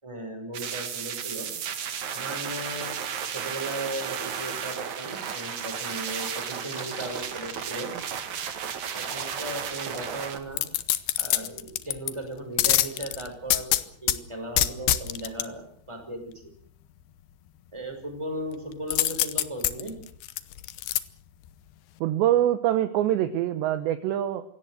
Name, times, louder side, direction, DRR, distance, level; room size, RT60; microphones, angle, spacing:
voice 1, 0.0-1.5 2.1-3.0 3.3-7.9 8.9-10.7 11.2-16.2 17.7-19.9, right 1 dB, 5° right, 4 dB, 5.6 m, -37 dB
sound 1, 0.5-10.4, right 8 dB, 55° right, 2.2 m, -34 dB
sound 2, 1.8-10.2, right 2 dB, 25° right, 4.3 m, -46 dB
sound 3, 10.5-12.1 12.6-14.2 14.6-15.5 18.9-21.0 21.5-21.6, left 14 dB, 75° left, 2.4 m, -25 dB
voice 2, 22.0-24.4, right 12 dB, 75° right, 11 dB, 3.0 m, -24 dB
25.0 x 17.5 x 7.9 m, 0.63 s
omnidirectional pair, 5.7 m